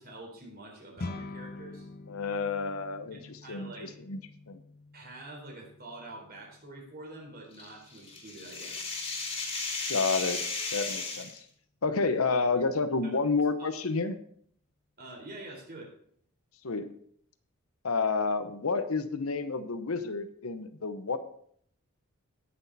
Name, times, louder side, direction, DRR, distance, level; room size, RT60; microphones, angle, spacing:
voice 1, 0.0-1.9 3.1-3.9 4.9-9.0 13.6-13.7 15.0-15.9, right 2 dB, 45° right, -1 dB, 4.0 m, -46 dB
sound 1, 1.0-10.5, left 2 dB, 45° left, 0.7 m, -47 dB
voice 2, 2.1-4.2 4.5-4.6 9.9-10.4 10.7-11.4 11.8-14.2 16.6-16.9 17.8-21.2, left 4 dB, 85° left, 10 dB, 0.9 m, -30 dB
sound 2, 7.6-11.4, left 3 dB, 25° left, 2.4 m, -35 dB
17.5 x 6.4 x 4.1 m, 0.63 s
head